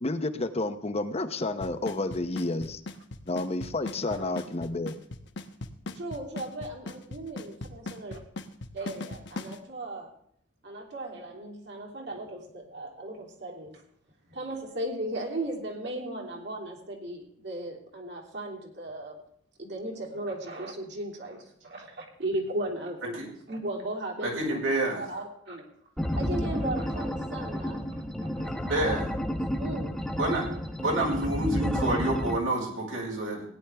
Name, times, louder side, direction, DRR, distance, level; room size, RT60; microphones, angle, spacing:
voice 1, 0.0-2.8 3.3-4.9, left 2 dB, 35° left, 10 dB, 0.8 m, -30 dB
Drum kit / Snare drum / Bass drum, 1.6-9.6, left 3 dB, 65° left, 1.0 m, -37 dB
voice 2, 5.9-8.2 8.7-10.1 10.6-13.8 14.3-19.1 19.6-23.2 23.5-24.6 24.9-25.6 26.1-27.8 28.2-28.5 28.8-29.0 29.6-30.0, right 1 dB, 60° right, 0 dB, 2.9 m, -36 dB
voice 3, 24.2-25.0 27.9-28.0 28.6-29.1 30.2-30.4 30.8-33.4, right 1 dB, 85° right, -2 dB, 4.9 m, -28 dB
sound 1, 26.0-32.4, equal, ahead, 1.1 m, -31 dB
17.0 x 10.0 x 3.4 m, 0.67 s
head